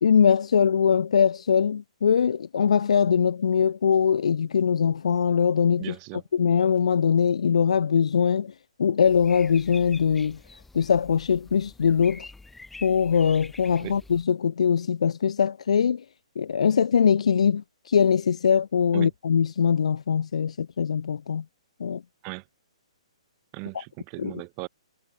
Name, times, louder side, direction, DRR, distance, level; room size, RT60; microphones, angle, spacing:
voice 1, 0.0-5.9 6.3-8.5 8.8-10.4 10.7-12.3 12.8-16.0 16.3-21.4 21.8-22.0 24.2-24.3, left 7 dB, 75° left, 1.4 m, -22 dB
voice 2, 5.8-6.2 13.8-14.0 18.9-19.1 22.2-22.4 23.5-24.7, right 40 dB or more, 25° right, 4.4 m, -37 dB
sound 1, 9.0-14.2, left 3 dB, 5° left, 3.7 m, -47 dB
hypercardioid pair, 160°, 3 cm